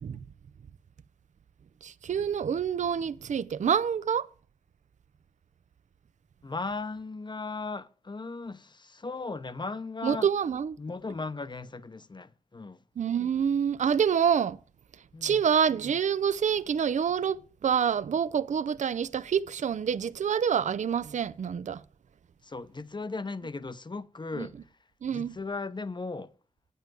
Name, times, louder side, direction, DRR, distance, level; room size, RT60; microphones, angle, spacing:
voice 1, 1.8-4.3 10.0-10.8 13.0-14.6 15.2-21.8 24.4-24.5 25.0-25.4, right 7 dB, 60° right, 0.4 m, -27 dB
voice 2, 6.4-10.3 10.8-12.8 15.1-15.4 22.4-24.7 25.1-26.3, left 3 dB, 35° left, 0.7 m, -37 dB
8.9 x 5.5 x 7.4 m
cardioid pair, 55°, 14 cm